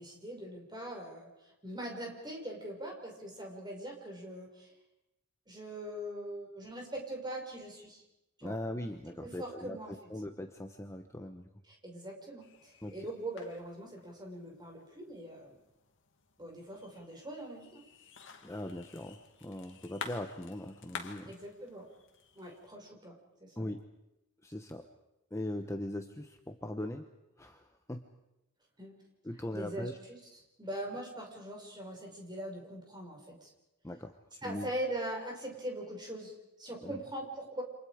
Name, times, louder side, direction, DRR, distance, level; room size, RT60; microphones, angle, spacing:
voice 1, 0.0-4.7 5.5-8.0 8.4-8.6 9.1-10.1 11.7-15.6 16.4-17.8 21.3-21.9 22.3-23.1 23.4-23.7 28.8-28.9 29.5-30.2 30.6-33.5 34.4-37.6, right 1 dB, 20° right, 1 dB, 5.7 m, -42 dB
voice 2, 8.4-9.8 10.1-11.5 12.8-13.0 18.4-21.3 23.6-23.8 24.4-24.9 25.3-27.1 27.4-28.0 29.2-30.0 33.8-34.7 36.8-37.0, left 1 dB, 15° left, 5 dB, 1.1 m, -40 dB
sound 1, 12.4-22.7, left 6 dB, 60° left, 2.2 m, -51 dB
29.0 x 27.0 x 5.1 m, 0.91 s
head